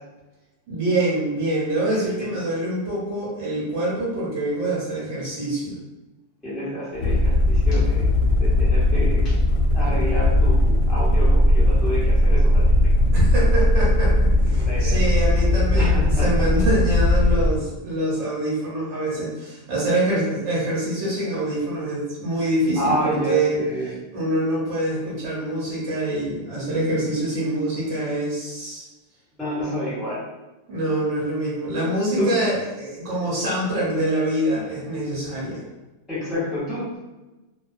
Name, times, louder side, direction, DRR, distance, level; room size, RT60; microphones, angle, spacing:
voice 1, 0.7-5.7 13.1-28.9 30.7-35.6, right 1 dB, 75° right, -6 dB, 1.2 m, -25 dB
voice 2, 1.9-2.3 6.4-8.1 8.4-9.2 9.7-12.7 14.7-15.0 15.7-16.2 22.8-23.9 29.4-30.2 32.2-32.3 36.1-37.0, equal, ahead, -10 dB, 0.5 m, -28 dB
sound 1, 6.9-17.6, left 1 dB, 90° left, 1.0 m, -18 dB
2.5 x 2.2 x 2.4 m, 1.1 s
omnidirectional pair, 1.3 m